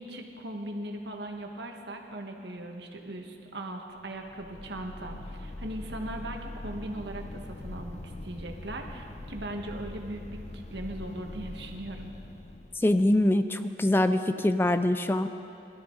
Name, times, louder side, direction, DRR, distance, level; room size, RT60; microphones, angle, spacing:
voice 1, 0.0-12.1, right 1 dB, 75° right, 3 dB, 1.4 m, -39 dB
sound 1, 4.1-13.4, left 2 dB, 40° left, 0.8 m, -42 dB
voice 2, 12.8-15.3, left 1 dB, 15° left, 10 dB, 0.4 m, -24 dB
21.0 x 13.0 x 4.0 m, 2.9 s
head